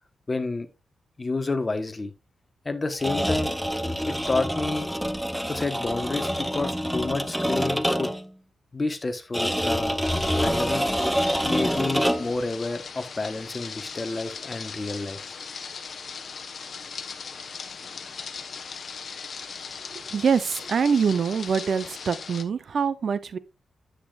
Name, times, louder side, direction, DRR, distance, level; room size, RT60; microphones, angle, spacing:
voice 1, 0.3-0.7 1.2-2.1 2.6-3.5 4.1-4.9 5.5-8.1 8.7-10.0 10.4-10.9 11.4-15.4, left 3 dB, 25° left, 1.1 m, -29 dB
sound 1, 2.9-8.3 9.3-12.4, equal, ahead, 0.6 m, -26 dB
sound 2, 10.0-22.4, left 5 dB, 50° left, 1.0 m, -39 dB
voice 2, 20.1-23.4, right 6 dB, 55° right, 0.6 m, -24 dB
9.7 x 8.4 x 2.4 m
wide cardioid pair, 115°, 0 cm